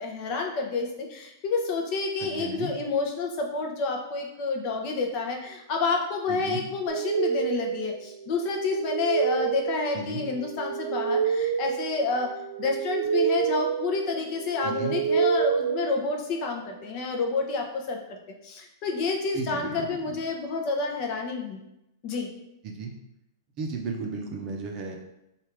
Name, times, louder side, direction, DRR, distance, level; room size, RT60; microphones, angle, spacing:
voice 1, 0.0-12.3 12.6-21.6 22.0-22.3, left 4 dB, 35° left, 1 dB, 0.7 m, -29 dB
voice 2, 2.2-2.7 6.3-6.6 9.9-10.2 14.6-14.9 19.3-20.1 22.6-22.9 23.6-25.0, right 4 dB, 30° right, 1 dB, 0.6 m, -34 dB
sound 1, 6.9-16.6, right 7 dB, 80° right, 0.4 m, -29 dB
3.4 x 2.5 x 4.5 m, 0.86 s
hypercardioid pair, 150°, 2 cm